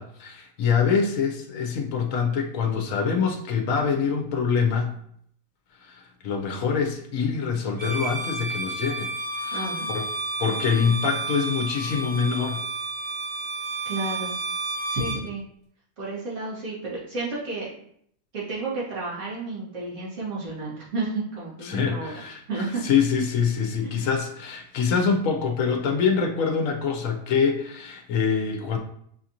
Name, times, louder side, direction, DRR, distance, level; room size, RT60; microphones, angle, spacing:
voice 1, 0.0-5.0 5.8-10.0 10.4-12.6 21.6-28.8, left 6 dB, 80° left, 4 dB, 1.0 m, -25 dB
Bowed string instrument, 7.7-15.2, right 3 dB, 40° right, 0.9 m, -31 dB
voice 2, 9.5-10.0 13.9-14.4 14.9-15.4 16.0-17.7 18.3-22.1 22.5-22.8 23.8-24.1, right 3 dB, 65° right, -7 dB, 1.9 m, -31 dB
5.7 x 2.5 x 2.8 m, 0.66 s
omnidirectional pair, 1.4 m